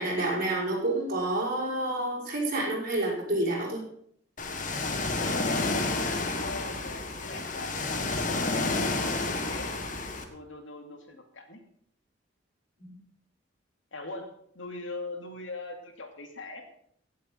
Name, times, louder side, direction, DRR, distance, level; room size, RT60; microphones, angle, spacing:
voice 1, 0.0-3.8 12.8-13.0, right 1 dB, 45° right, -4 dB, 6.0 m, -29 dB
Ocean, 4.4-10.2, left 3 dB, 45° left, 1.5 m, -30 dB
voice 2, 5.2-9.8 10.3-11.6 13.9-16.6, left 2 dB, 75° left, 4 dB, 2.5 m, -41 dB
16.5 x 7.6 x 5.6 m, 0.66 s
head